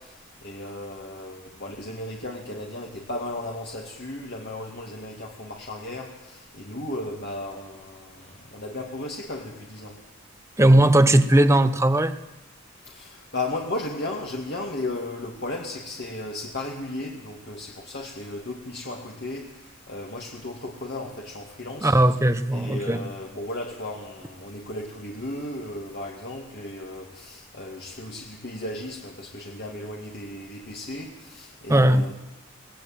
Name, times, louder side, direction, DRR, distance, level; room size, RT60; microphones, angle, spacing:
voice 1, 0.0-10.0 12.8-21.9 22.5-32.1, left 2 dB, 50° left, 2.4 m, -35 dB
voice 2, 10.6-12.2 21.8-23.0 31.7-32.1, right 1 dB, 15° right, 0.9 m, -18 dB
23.5 x 18.5 x 9.0 m
head